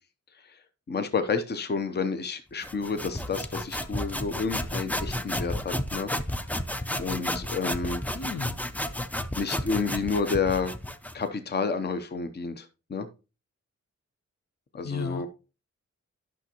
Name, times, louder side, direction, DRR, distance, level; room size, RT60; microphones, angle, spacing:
voice 1, 0.9-6.1 7.0-8.1 9.4-10.7 11.1-13.1 14.7-15.3, left 4 dB, 35° left, 9 dB, 0.7 m, -30 dB
sound 1, 2.6-11.2, left 1 dB, 5° left, 0.4 m, -32 dB
voice 2, 8.1-8.6 14.8-15.3, left 5 dB, 60° left, 9 dB, 0.8 m, -34 dB
10.5 x 6.1 x 2.9 m, 0.31 s
wide cardioid pair, 160°, 30 cm